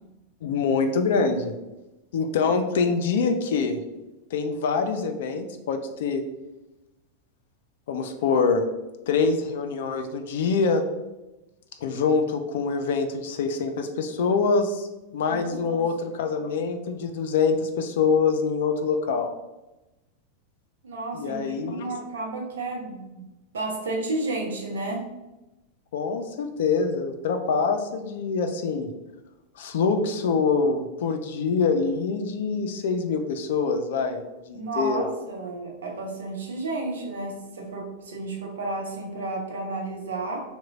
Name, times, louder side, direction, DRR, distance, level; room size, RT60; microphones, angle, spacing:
voice 1, 0.4-1.5 2.1-3.8 4.3-6.2 7.9-8.6 9.1-10.8 11.8-14.9 15.1-19.3 21.1-21.9 25.9-28.9 29.6-34.2 34.5-35.1, left 5 dB, 55° left, 7 dB, 0.4 m, -25 dB
voice 2, 15.2-15.8 20.8-23.3 23.5-25.0 34.5-40.4, right 2 dB, 65° right, 0 dB, 0.7 m, -32 dB
3.1 x 2.2 x 3.5 m, 1.0 s
figure-of-eight pair, 90°, 0 cm